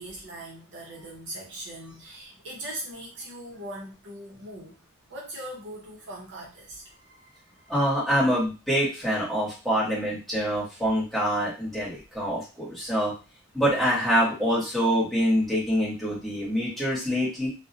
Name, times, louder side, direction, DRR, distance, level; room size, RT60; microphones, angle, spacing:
voice 1, 0.0-4.7 5.1-7.8, right 1 dB, 55° right, -2 dB, 0.7 m, -40 dB
voice 2, 7.7-13.1 13.5-17.5, equal, ahead, -8 dB, 1.1 m, -25 dB
2.5 x 2.1 x 2.6 m, 0.31 s
head